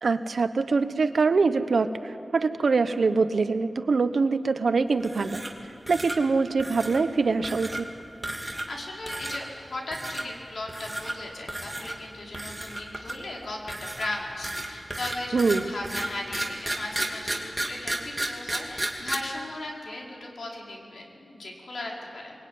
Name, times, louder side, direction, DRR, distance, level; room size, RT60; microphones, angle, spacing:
voice 1, 0.0-5.4 5.9-7.9 15.3-15.7, right 4 dB, 70° right, 10 dB, 1.1 m, -24 dB
sound 1, 5.0-5.6 5.9-6.2 6.6-7.0 7.4-7.8 8.2-8.8 9.1-9.4 9.9-10.2 10.7-11.2 11.5-12.0 12.3-13.3 13.7-19.2, right 1 dB, 15° right, 2.8 m, -33 dB
voice 2, 8.4-22.3, left 2 dB, 75° left, -2 dB, 4.8 m, -37 dB
23.5 x 23.0 x 9.4 m, 2.7 s
wide cardioid pair, 110°, 0 cm